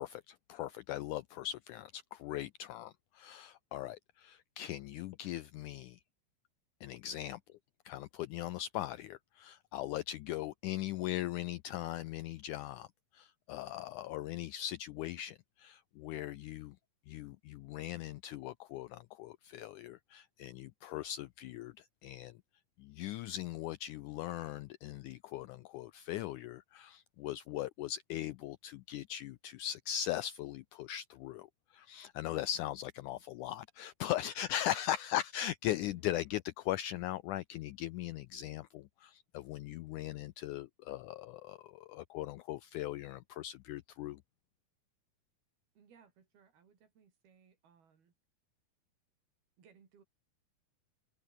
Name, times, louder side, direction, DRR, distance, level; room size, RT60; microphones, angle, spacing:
voice 1, 0.0-6.0 6.8-7.4 7.9-12.9 13.1-16.8 17.1-22.4 22.8-31.5 31.7-44.2, left 13 dB, 85° left, 1.7 m, -39 dB
voice 2, 35.9-36.2 45.8-48.1 49.6-50.0, right 6 dB, 85° right, 6.1 m, -64 dB
omnidirectional pair, 4.3 m